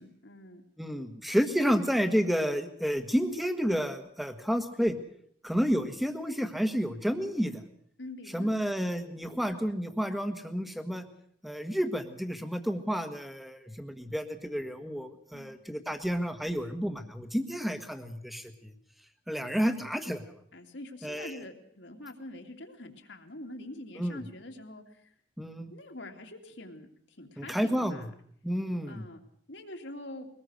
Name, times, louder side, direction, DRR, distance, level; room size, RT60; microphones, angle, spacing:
voice 1, 0.0-0.6 8.0-8.5 15.3-15.5 20.5-25.1 25.7-28.1 28.8-29.2 29.5-30.3, left 1 dB, 70° left, 3 dB, 2.8 m, -45 dB
voice 2, 0.8-4.9 5.4-7.6 8.3-11.0 11.4-18.7 19.3-20.2 21.0-21.4 24.0-24.2 25.4-25.7 27.4-28.1 28.4-29.0, equal, ahead, 8 dB, 1.5 m, -30 dB
23.0 x 19.5 x 6.5 m, 0.63 s
head